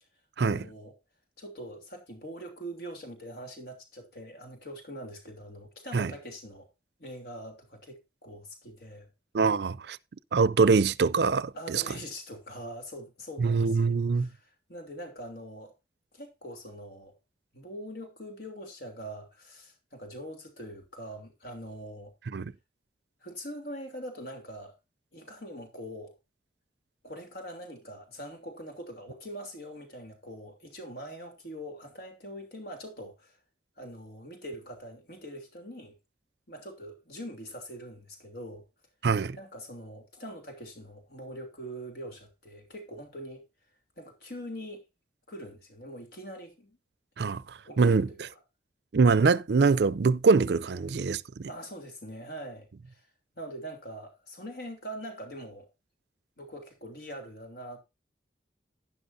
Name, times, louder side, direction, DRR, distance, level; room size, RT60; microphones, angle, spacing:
voice 1, 0.4-1.0 1.4-6.7 7.0-9.1 11.5-15.7 16.1-17.1 17.5-22.1 23.2-24.7 25.1-26.2 27.0-33.4 33.8-36.0 36.5-38.6 39.4-43.4 44.0-44.8 45.3-46.8 47.6-48.4 50.7-51.0 51.5-53.0 53.3-55.7 56.4-57.8, equal, 65° left, 3.1 m, -43 dB
voice 2, 9.3-10.0 10.3-11.8 13.4-14.3 22.3-22.5 39.0-39.4 47.2-48.1 48.9-51.5, right 4 dB, 75° right, 0.5 m, -24 dB
12.0 x 10.5 x 2.7 m
head